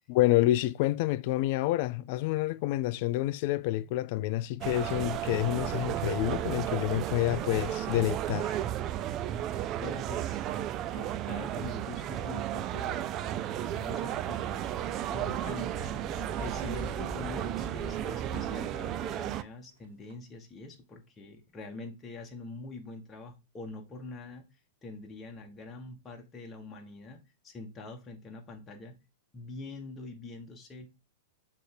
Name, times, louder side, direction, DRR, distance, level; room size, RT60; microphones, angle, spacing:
voice 1, 0.1-8.6, left 15 dB, 50° left, 0.4 m, -28 dB
sound 1, 4.6-19.4, right 12 dB, 35° right, 0.4 m, -34 dB
voice 2, 9.8-10.5 10.9-13.1 13.5-14.7 15.1-16.1 16.4-24.5 24.8-27.2 27.4-29.0 29.3-30.9, left 3 dB, 20° left, 1.6 m, -44 dB
sound 2, 11.3-18.6, left 1 dB, 10° right, 1.7 m, -46 dB
sound 3, 16.1-20.2, right 6 dB, 60° right, 1.1 m, -57 dB
6.1 x 3.4 x 4.9 m
hypercardioid pair, 105°, 0 cm